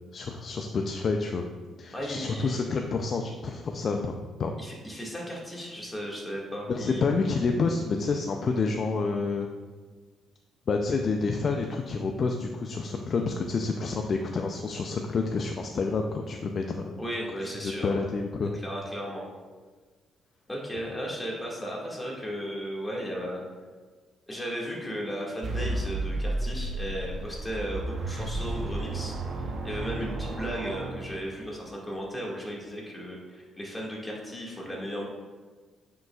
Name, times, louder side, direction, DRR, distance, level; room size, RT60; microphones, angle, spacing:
voice 1, 0.1-1.4 1.8-4.5 6.7-9.5 10.7-17.0 17.6-18.5, left 4 dB, 50° left, 3 dB, 0.5 m, -28 dB
voice 2, 1.9-2.6 4.6-7.0 17.0-18.0 18.4-19.3 20.5-23.4 24.3-35.1, equal, 15° left, -3 dB, 1.9 m, -35 dB
sound 1, 25.4-31.6, right 2 dB, 60° right, 0.8 m, -33 dB
9.1 x 5.3 x 2.4 m, 1.4 s
cardioid pair, 90°, 0 cm